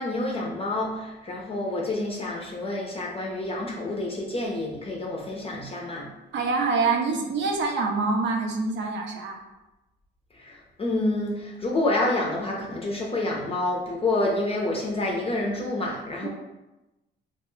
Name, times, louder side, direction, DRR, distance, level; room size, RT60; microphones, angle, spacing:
voice 1, 0.0-6.1 10.3-16.3, left 2 dB, 30° left, -2 dB, 0.5 m, -28 dB
voice 2, 6.3-9.4 16.2-16.3, right 4 dB, 65° right, 2 dB, 0.6 m, -25 dB
2.9 x 2.2 x 3.0 m, 1.0 s
cardioid pair, 90°, 20 cm